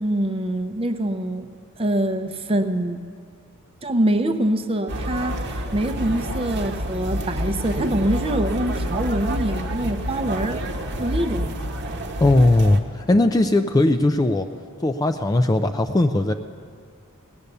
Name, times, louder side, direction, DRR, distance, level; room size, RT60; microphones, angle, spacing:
voice 1, 0.0-1.5 1.8-3.0 3.8-10.6 11.0-11.5, right 1 dB, 25° right, 8 dB, 0.6 m, -24 dB
sound 1, 4.9-12.8, equal, 50° right, 1.0 m, -28 dB
voice 2, 12.2-14.5 14.8-16.3, left 2 dB, 15° left, 7 dB, 0.3 m, -18 dB
18.0 x 8.4 x 6.7 m, 2.2 s
head